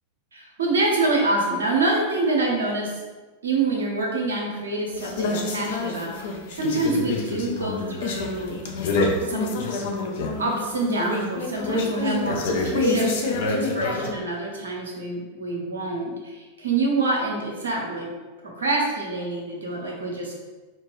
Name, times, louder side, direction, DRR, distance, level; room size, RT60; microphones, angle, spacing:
voice 1, 0.3-3.0 3.4-8.6 9.2-9.6 10.4-13.1 13.5-18.1 18.5-20.3, right 2 dB, 70° right, -2 dB, 0.5 m, -26 dB
sound 1, 4.9-14.1, left 3 dB, 55° left, 0.3 m, -27 dB
2.6 x 2.2 x 2.9 m, 1.3 s
figure-of-eight pair, 90°, 0 cm